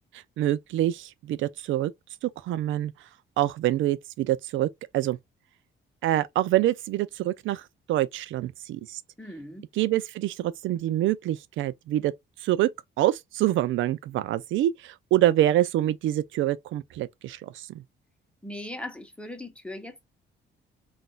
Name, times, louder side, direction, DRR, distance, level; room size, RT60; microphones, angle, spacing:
voice 1, 0.1-1.9 2.2-2.9 3.4-4.7 4.9-5.2 6.0-9.0 9.8-12.1 12.4-12.7 13.0-17.8, right 14 dB, 75° right, 0.4 m, -26 dB
voice 2, 9.2-9.7 18.4-20.0, left 1 dB, 5° left, 1.0 m, -39 dB
3.8 x 2.6 x 2.3 m
cardioid pair, 90°, 20 cm